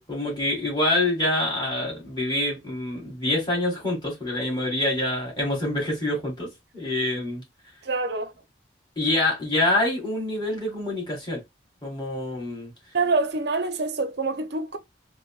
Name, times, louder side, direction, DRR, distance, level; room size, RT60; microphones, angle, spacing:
voice 1, 0.0-6.5 6.7-7.4 9.0-11.4 11.8-12.7, left 1 dB, 25° left, 1.9 m, -26 dB
voice 2, 7.8-8.3 12.9-14.8, right 3 dB, 60° right, 0.6 m, -26 dB
3.9 x 2.1 x 2.3 m
head